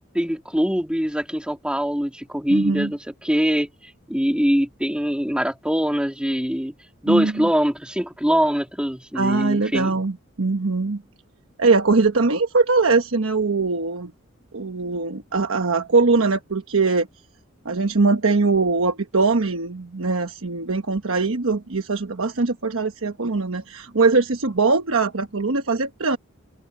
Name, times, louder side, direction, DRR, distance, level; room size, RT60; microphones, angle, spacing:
voice 1, 0.1-6.7 7.0-10.0, equal, 5° right, 2.6 m, -23 dB
voice 2, 2.5-2.9 7.1-7.5 9.1-11.0 11.6-14.1 14.5-17.1 17.6-26.2, right 3 dB, 75° right, 1.1 m, -21 dB
open air
head